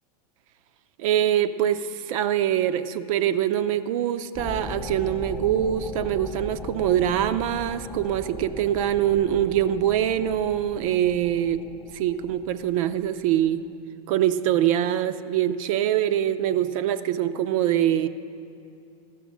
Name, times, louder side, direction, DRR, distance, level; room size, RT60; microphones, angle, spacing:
voice 1, 1.0-11.6 11.9-13.6 14.1-18.1, right 11 dB, 60° right, 11 dB, 0.5 m, -24 dB
sound 1, 4.3-13.5, left 3 dB, 5° left, 0.7 m, -39 dB
13.5 x 6.2 x 7.3 m, 2.5 s
hypercardioid pair, 130°, 20 cm